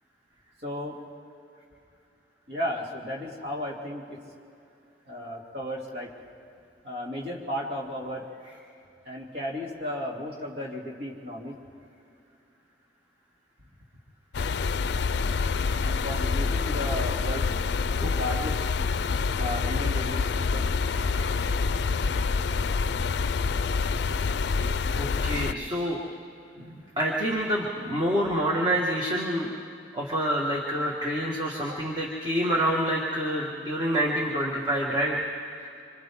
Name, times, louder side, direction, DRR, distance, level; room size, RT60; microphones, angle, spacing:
voice 1, 0.6-1.0 2.5-4.2 5.1-6.1 6.8-8.3 9.0-11.5 15.8-17.5 18.1-18.6 19.4-20.7, left 1 dB, 60° right, -2 dB, 2.9 m, -34 dB
sound 1, 14.3-25.5, left 4 dB, 70° left, 0.4 m, -27 dB
voice 2, 21.0-21.5 24.9-26.0 26.6-29.5 29.9-35.7, equal, 25° right, -3 dB, 1.7 m, -28 dB
27.0 x 26.0 x 3.7 m, 2.6 s
head